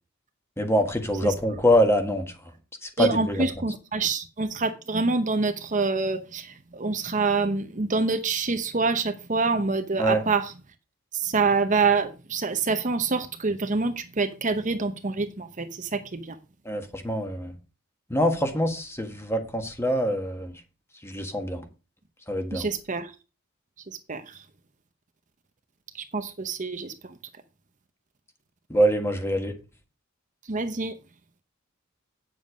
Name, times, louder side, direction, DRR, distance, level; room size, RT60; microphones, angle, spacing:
voice 1, 0.6-2.3 2.8-3.4 10.0-10.2 16.6-17.5 18.1-20.5 21.0-21.6 22.3-22.7 28.7-29.5, equal, 10° left, 1.6 m, -24 dB
voice 2, 3.0-10.5 11.1-16.4 22.5-23.1 23.9-24.4 25.9-27.1 30.5-30.9, right 4 dB, 40° right, 0.8 m, -26 dB
8.9 x 7.5 x 5.1 m
head